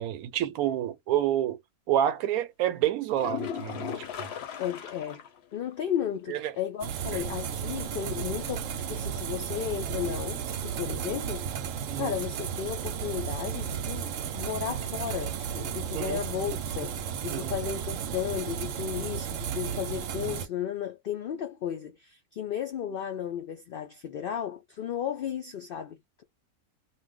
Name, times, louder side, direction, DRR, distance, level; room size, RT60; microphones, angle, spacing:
voice 1, 0.0-1.6 1.9-4.3 6.3-6.5 7.1-7.2 11.9-12.1 15.9-16.2 17.3-17.5, right 11 dB, 90° right, 1.1 m, -28 dB
sound 1, 3.1-5.4 5.7-5.8 6.3-6.4 10.1-10.2, left 9 dB, 60° left, 0.8 m, -37 dB
voice 2, 4.6-5.2 5.5-11.5 12.0-26.2, left 9 dB, 80° left, 0.5 m, -34 dB
sound 2, 6.8-20.5, right 8 dB, 70° right, 0.9 m, -34 dB
2.3 x 2.1 x 3.6 m
omnidirectional pair, 1.5 m